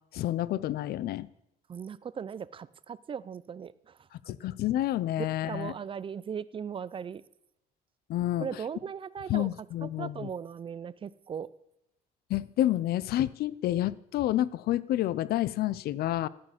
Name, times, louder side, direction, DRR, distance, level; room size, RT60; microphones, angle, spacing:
voice 1, 0.1-1.3 4.3-5.7 8.1-8.5 9.3-10.3 12.3-16.3, left 13 dB, 65° left, 19 dB, 0.6 m, -29 dB
voice 2, 1.7-3.9 5.2-7.2 8.4-9.5 9.8-11.5, right 7 dB, 30° right, 17 dB, 0.6 m, -38 dB
13.0 x 8.7 x 7.2 m, 0.83 s
cardioid pair, 110°, 17 cm